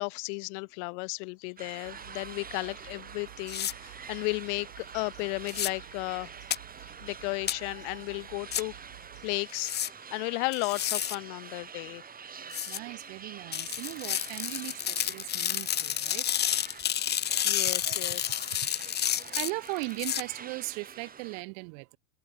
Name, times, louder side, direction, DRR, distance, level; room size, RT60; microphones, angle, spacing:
voice 1, 0.0-6.3 7.0-8.8 9.2-9.7 10.1-12.0 17.2-18.4, left 35 dB, 50° left, 0.7 m, -34 dB
sound 1, 1.6-21.4, right 6 dB, 20° right, 3.6 m, -47 dB
sound 2, 1.8-9.4, right 17 dB, 70° right, 4.0 m, -52 dB
sound 3, 3.5-3.7 5.5-5.7 6.5-6.6 7.5-7.6 8.5-8.6 9.5-9.9 10.5-11.2 12.5-12.8 13.5-20.2, left 10 dB, 20° left, 0.9 m, -30 dB
voice 2, 12.7-16.3 19.0-22.0, right 40 dB or more, 55° right, 2.0 m, -38 dB
hypercardioid pair, 110°, 45 cm